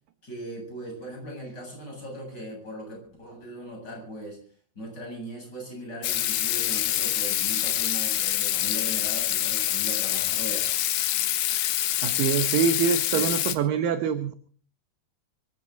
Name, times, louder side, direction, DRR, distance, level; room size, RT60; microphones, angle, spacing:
voice 1, 0.2-4.4 4.7-10.7 13.1-13.4, right 1 dB, 25° left, 1 dB, 8.2 m, -39 dB
Water tap faucet / Sink (filling or washing), 6.0-13.6, left 13 dB, 85° left, 3.3 m, -26 dB
voice 2, 12.0-14.3, right 7 dB, 70° right, 10 dB, 2.2 m, -25 dB
24.0 x 15.5 x 3.9 m, 0.43 s
omnidirectional pair, 4.9 m